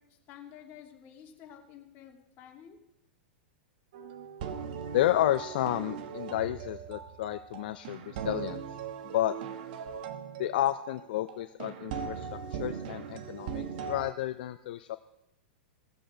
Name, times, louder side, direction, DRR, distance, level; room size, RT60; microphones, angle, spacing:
voice 1, 0.0-2.8, left 9 dB, 40° left, 2 dB, 2.6 m, -51 dB
sound 1, 3.9-14.1, right 7 dB, 60° right, 1.2 m, -39 dB
voice 2, 4.9-8.6 9.1-9.3 10.4-15.0, left 13 dB, 65° left, 10 dB, 0.6 m, -31 dB
17.5 x 7.7 x 4.9 m, 0.84 s
hypercardioid pair, 115°, 5 cm